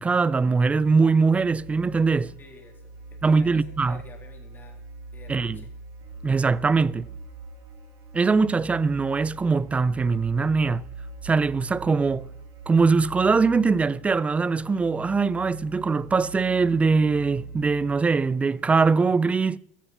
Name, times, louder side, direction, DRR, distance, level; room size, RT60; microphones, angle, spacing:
voice 1, 0.0-2.3 3.2-4.0 5.3-5.6 6.2-7.1 8.1-10.8 11.2-12.3 12.7-19.6, right 4 dB, 15° right, 0.4 m, -22 dB
sound 1, 0.6-18.8, right 3 dB, 55° right, 5.7 m, -42 dB
voice 2, 2.4-5.7, left 4 dB, 25° left, 3.3 m, -50 dB
15.0 x 12.0 x 5.7 m
supercardioid pair, 115°, 8 cm